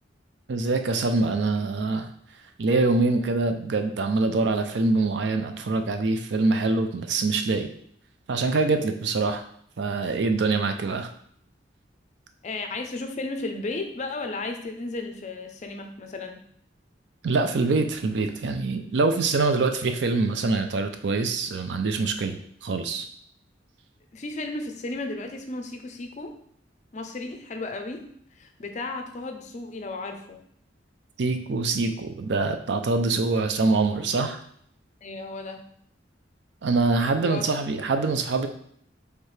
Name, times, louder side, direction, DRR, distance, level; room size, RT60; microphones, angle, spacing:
voice 1, 0.5-2.1 2.6-7.7 8.3-9.4 9.8-11.1 17.2-23.0 31.2-34.4 36.6-38.5, right 3 dB, 65° right, 7 dB, 0.4 m, -24 dB
voice 2, 12.4-16.4 24.1-26.3 26.9-28.1 28.3-30.4 35.0-35.7 37.2-37.5, left 2 dB, 40° left, 5 dB, 0.5 m, -34 dB
4.6 x 3.3 x 3.2 m, 0.66 s
head